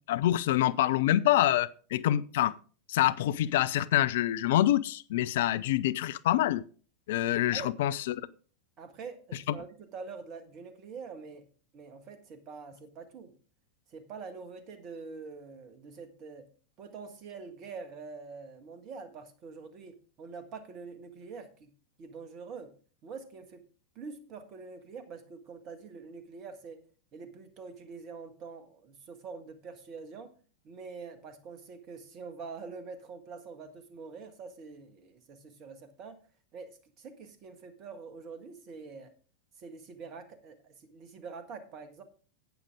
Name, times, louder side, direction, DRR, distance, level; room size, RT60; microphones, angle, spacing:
voice 1, 0.1-2.5 2.9-6.6 7.1-8.3, left 13 dB, 55° left, 0.5 m, -26 dB
voice 2, 8.8-11.5 11.7-13.3 13.9-16.5 16.8-21.7 22.0-22.7 23.0-23.6 24.0-26.8 27.1-30.4 30.6-36.2 36.5-39.1 39.6-42.0, right 5 dB, 35° right, 1.6 m, -45 dB
11.5 x 8.8 x 3.6 m
figure-of-eight pair, 90°, 0 cm